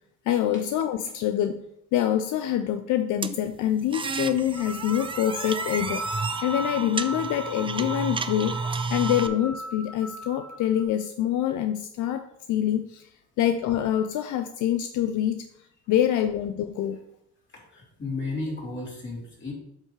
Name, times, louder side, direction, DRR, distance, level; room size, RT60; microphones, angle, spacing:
voice 1, 0.3-1.6 1.9-8.6 8.9-13.0 13.4-15.5 15.9-17.0, left 11 dB, 80° left, 8 dB, 0.5 m, -26 dB
sound 1, 3.2-9.3, right 4 dB, 20° right, 0.4 m, -32 dB
sound 2, 4.5-10.8, right 1 dB, 45° right, 1.7 m, -37 dB
voice 2, 17.7-19.5, left 3 dB, 40° left, -3 dB, 3.1 m, -33 dB
8.1 x 5.5 x 3.2 m, 0.75 s
cardioid pair, 90°, 30 cm